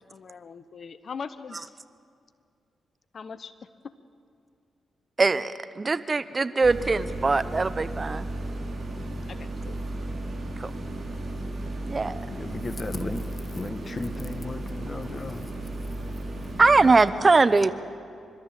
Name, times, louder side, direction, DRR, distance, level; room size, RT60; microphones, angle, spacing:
voice 1, 0.0-1.7 3.1-3.5 9.3-9.7, left 5 dB, 60° left, 14 dB, 0.7 m, -40 dB
voice 2, 5.2-8.3 10.6-10.7 11.9-12.3 16.6-17.7, right 3 dB, 40° right, 14 dB, 0.8 m, -21 dB
sound 1, 6.6-16.9, right 1 dB, 55° right, 4.5 m, -35 dB
voice 3, 12.3-15.6, left 2 dB, 35° left, 11 dB, 1.5 m, -35 dB
29.0 x 13.0 x 7.5 m, 2.4 s
hypercardioid pair, 40°, 0 cm